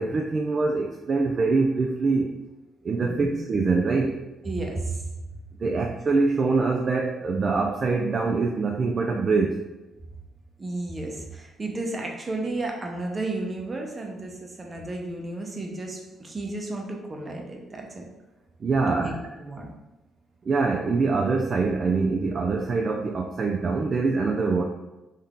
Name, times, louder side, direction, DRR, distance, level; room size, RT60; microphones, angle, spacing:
voice 1, 0.0-2.3 2.8-4.2 5.6-9.6 18.6-19.2 20.4-24.6, right 4 dB, 45° right, 1 dB, 0.3 m, -24 dB
voice 2, 3.0-3.4 4.4-5.0 10.6-18.0 18.9-19.7, right 2 dB, 30° right, 1 dB, 0.8 m, -33 dB
3.7 x 2.7 x 3.6 m, 1.0 s
cardioid pair, 90°, 0 cm